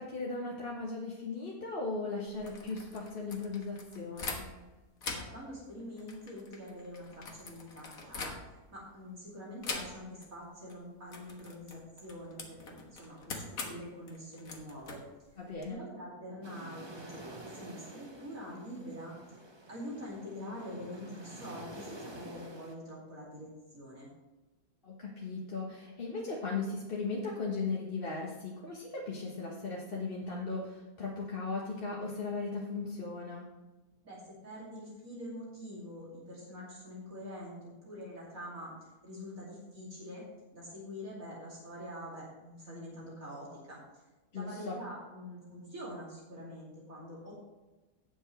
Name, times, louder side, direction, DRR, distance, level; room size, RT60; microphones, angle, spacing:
voice 1, 0.0-4.4 15.4-15.8 24.8-33.5 44.3-44.8, left 3 dB, 40° left, -4 dB, 1.5 m, -37 dB
sound 1, 2.3-4.7 5.0-8.8 9.6-10.3 10.6-10.8 11.1-15.7, left 3 dB, 65° left, 1.8 m, -43 dB
voice 2, 5.1-15.0 15.7-24.1 34.0-37.6 37.8-38.7 39.0-40.2 40.5-44.0 44.3-47.3, equal, 60° right, -6 dB, 3.2 m, -45 dB
sound 2, 16.4-22.7, right 1 dB, 20° right, 0.9 m, -49 dB
17.5 x 6.4 x 3.2 m, 1.2 s
omnidirectional pair, 1.6 m